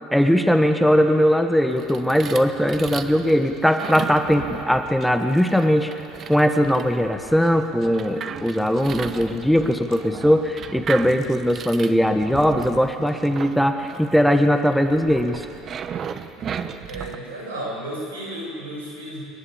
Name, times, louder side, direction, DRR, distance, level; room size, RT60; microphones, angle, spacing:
voice 1, 0.1-5.9 6.3-15.5, equal, ahead, 6 dB, 1.4 m, -20 dB
sound 1, 1.7-17.2, right 7 dB, 40° right, 1.1 m, -36 dB
voice 2, 16.9-19.2, right 1 dB, 85° right, -3 dB, 6.9 m, -33 dB
27.0 x 11.5 x 8.8 m, 2.5 s
hypercardioid pair, 70°, 0 cm